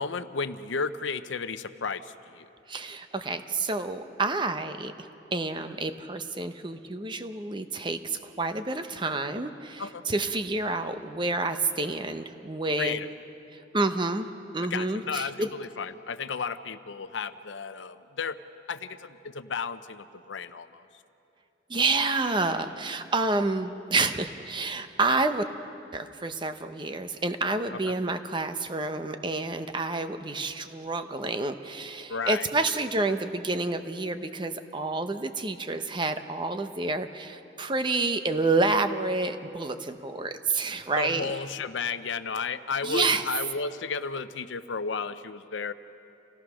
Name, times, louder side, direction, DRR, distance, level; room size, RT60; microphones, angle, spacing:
voice 1, 0.0-2.5 9.8-10.0 12.8-13.1 14.7-18.4 18.7-20.8 32.1-32.5 41.0-45.7, left 5 dB, 80° left, 12 dB, 0.7 m, -33 dB
voice 2, 2.7-4.9 5.3-13.0 13.5-14.3 14.5-15.5 21.7-25.4 25.9-41.3 42.8-43.2, right 3 dB, 25° right, 8 dB, 0.8 m, -29 dB
28.0 x 17.0 x 6.3 m, 2.8 s
head